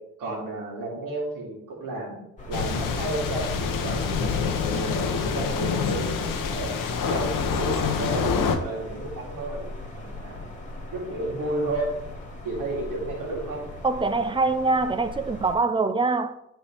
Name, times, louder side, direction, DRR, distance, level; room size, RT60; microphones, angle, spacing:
voice 1, 0.2-2.2 2.5-6.7 7.0-9.7 10.0-10.4 10.9-11.9 12.4-13.6, right 2 dB, 85° right, 2.5 m, -32 dB
sound 1, 2.4-15.6, left 2 dB, 25° left, 2.0 m, -39 dB
sound 2, 2.5-8.6, left 5 dB, 85° left, 0.9 m, -26 dB
voice 2, 13.8-16.3, right 3 dB, 15° right, 0.6 m, -24 dB
9.7 x 4.5 x 3.4 m
cardioid pair, 75°, 32 cm